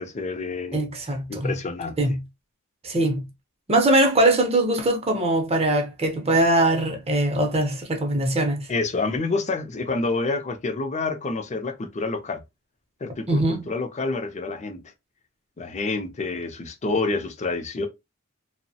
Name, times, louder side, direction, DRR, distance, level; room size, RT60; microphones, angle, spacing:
voice 1, 0.0-0.8 1.3-2.0 8.7-12.4 13.0-14.8 15.6-17.9, left 3 dB, 30° left, 0.5 m, -28 dB
voice 2, 0.7-1.5 2.0-2.2 2.8-3.2 3.7-8.7 13.3-13.7, right 1 dB, 30° right, 0.6 m, -21 dB
2.9 x 2.0 x 2.7 m
head